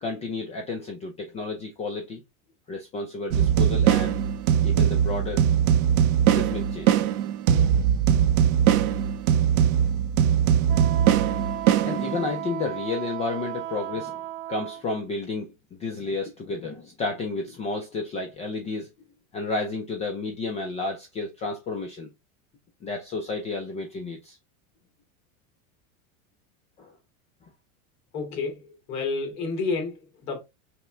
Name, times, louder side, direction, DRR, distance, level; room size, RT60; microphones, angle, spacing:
voice 1, 0.0-2.2 2.7-4.2 4.6-5.4 6.3-6.9 11.8-14.2 14.5-18.9 19.3-22.1 22.8-24.4 26.8-26.9, left 3 dB, 15° left, 0.3 m, -31 dB
sound 1, 3.3-12.4, right 9 dB, 85° right, 0.8 m, -21 dB
Wind instrument woodwind instrument, 10.7-14.8, right 11 dB, 45° right, 0.5 m, -35 dB
voice 2, 28.1-30.4, left 4 dB, 40° left, 2.1 m, -30 dB
5.7 x 2.1 x 3.1 m
supercardioid pair, 135°, 42 cm